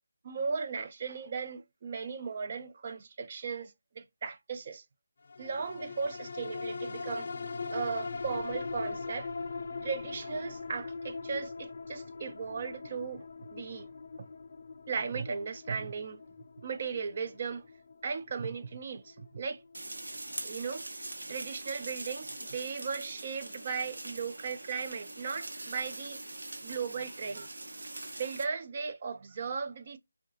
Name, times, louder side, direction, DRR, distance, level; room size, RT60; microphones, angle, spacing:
voice 1, 0.2-4.8 5.4-7.3 7.7-9.3 9.8-13.2 13.5-13.9 14.9-16.2 16.6-17.6 18.0-19.6 20.4-20.9 21.3-26.2 26.6-27.5 28.2-30.0, right 5 dB, 35° right, 0.4 m, -37 dB
sound 1, 5.3-20.0 20.4-20.5, left 4 dB, 45° left, 0.3 m, -41 dB
sound 2, 19.7-28.4, right 2 dB, 70° right, 0.9 m, -43 dB
3.6 x 2.2 x 2.7 m
figure-of-eight pair, 165°, 0 cm